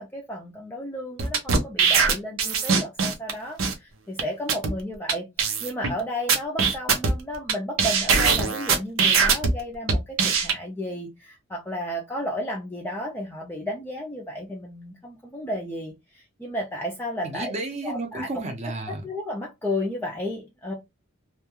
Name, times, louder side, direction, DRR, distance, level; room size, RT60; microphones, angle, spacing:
voice 1, 0.0-17.5 17.8-18.3 18.9-20.7, left 1 dB, 10° left, 0.4 m, -33 dB
sound 1, 1.2-3.3 3.6-3.7 4.2-4.3 4.5-4.7 5.1-5.2 5.4-5.9 6.3-7.5 7.8-9.5 9.9-10.5, right 5 dB, 85° right, 0.6 m, -21 dB
voice 2, 17.2-19.0, right 2 dB, 35° right, 0.6 m, -32 dB
2.3 x 2.2 x 2.9 m
head